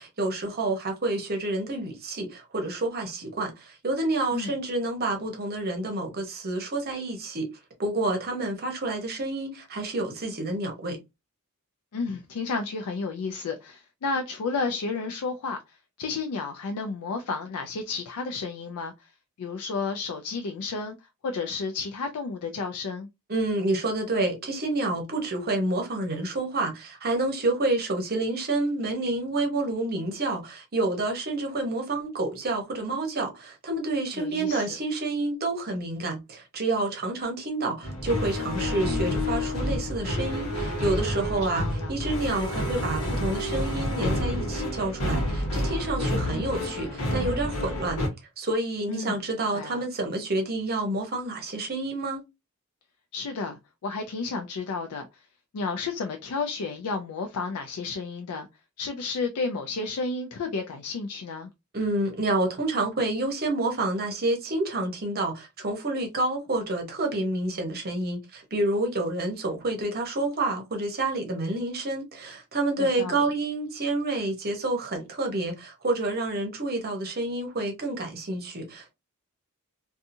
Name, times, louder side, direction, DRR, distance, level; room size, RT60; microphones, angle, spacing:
voice 1, 0.0-7.5 7.8-11.0 23.3-48.0 48.4-52.2 61.7-78.9, right 2 dB, 45° right, 0.8 m, -29 dB
voice 2, 11.9-19.1 19.4-20.9 21.2-23.1 34.2-34.8 41.4-42.0 48.9-49.2 49.5-49.8 53.1-55.2 55.5-58.5 58.8-61.5 72.8-73.3, left 4 dB, 90° left, 0.4 m, -32 dB
sound 1, 37.8-48.1, left 1 dB, 70° left, 1.0 m, -29 dB
2.7 x 2.3 x 2.5 m
head